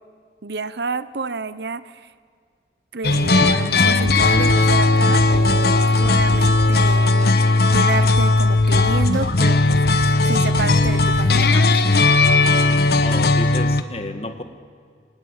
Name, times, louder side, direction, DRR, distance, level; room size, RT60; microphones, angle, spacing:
voice 1, 0.4-2.1 2.9-11.8, right 4 dB, 70° right, 15 dB, 0.8 m, -29 dB
sound 1, 3.0-13.8, left 2 dB, 60° left, 1.1 m, -17 dB
sound 2, 4.0-4.7 5.2-5.5 6.0-6.9 7.7-7.8 8.1-8.2 8.6-9.2 9.7-10.1 10.5-11.5, equal, 20° right, 3.4 m, -31 dB
voice 2, 13.0-14.4, left 2 dB, 35° left, 8 dB, 1.5 m, -31 dB
26.0 x 19.0 x 8.8 m, 2.1 s
head